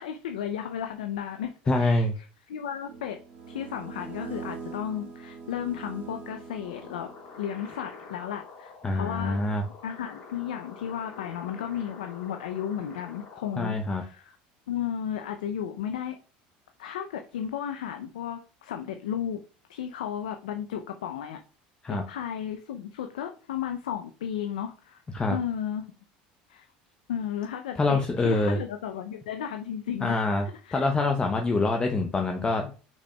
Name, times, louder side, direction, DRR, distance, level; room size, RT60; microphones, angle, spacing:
voice 1, 0.0-2.1 2.5-3.2 3.5-7.1 7.4-9.4 9.8-14.4 14.7-16.2 16.8-19.4 19.7-21.4 21.9-25.0 25.3-25.9 26.5-26.7 27.1-30.2 30.6-30.9, left 9 dB, 90° left, 6 dB, 0.4 m, -34 dB
voice 2, 1.7-2.1 8.8-9.6 13.6-14.0 21.8-22.0 25.1-25.4 27.8-28.6 30.0-30.5 30.7-32.7, left 2 dB, 20° left, 3 dB, 0.7 m, -25 dB
sound 1, 2.8-7.5, right 5 dB, 55° right, 1.6 m, -42 dB
sound 2, 6.6-13.6, left 4 dB, 55° left, 2.7 m, -47 dB
5.7 x 4.2 x 2.2 m, 0.37 s
hypercardioid pair, 90°, 4 cm